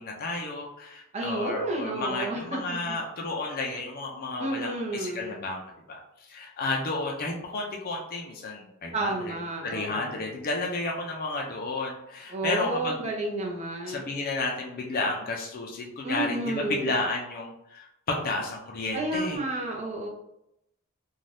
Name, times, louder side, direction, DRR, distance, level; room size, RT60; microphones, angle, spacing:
voice 1, 0.0-5.6 5.9-6.0 6.3-9.4 9.6-13.1 13.9-19.4, left 3 dB, 40° left, 0 dB, 0.5 m, -32 dB
voice 2, 1.1-2.6 4.4-5.4 8.9-10.2 12.3-14.1 16.0-16.9 18.9-20.1, right 2 dB, 30° right, -1 dB, 0.6 m, -31 dB
2.6 x 2.3 x 3.2 m, 0.80 s
head